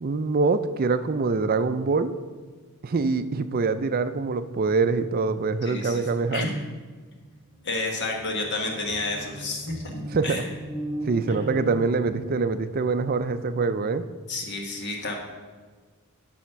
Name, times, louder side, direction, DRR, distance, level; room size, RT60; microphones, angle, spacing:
voice 1, 0.0-2.1 2.8-6.5 10.1-10.4 11.1-14.0, right 4 dB, 40° right, 12 dB, 0.4 m, -24 dB
voice 2, 5.6-6.6 7.6-9.9 10.2-10.5 11.3-11.4 14.3-15.2, left 2 dB, 55° left, 1 dB, 1.5 m, -30 dB
sound 1, 7.2-7.3 7.5-12.6, right 1 dB, 10° right, 1.6 m, -38 dB
12.5 x 4.2 x 5.8 m, 1.5 s
head